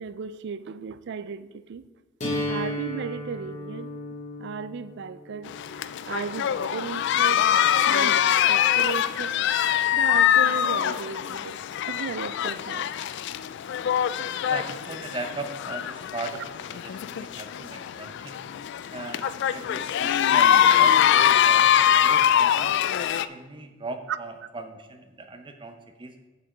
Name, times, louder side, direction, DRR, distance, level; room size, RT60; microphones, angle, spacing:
voice 1, 0.0-1.8 2.5-3.9 4.4-5.5 6.1-7.4 7.9-9.3 9.9-11.6 11.9-12.9 19.2-19.3 24.1-24.2, right 6 dB, 60° right, 0.4 m, -35 dB
sound 1, 2.2-8.2, left 1 dB, 40° left, 2.5 m, -36 dB
sound 2, 5.5-23.3, left 9 dB, 60° left, 0.3 m, -23 dB
voice 2, 14.5-18.5 18.9-19.2 19.5-21.7 22.0-22.8 23.2-26.2, right 3 dB, 25° right, 0.7 m, -39 dB
7.4 x 6.8 x 5.0 m
head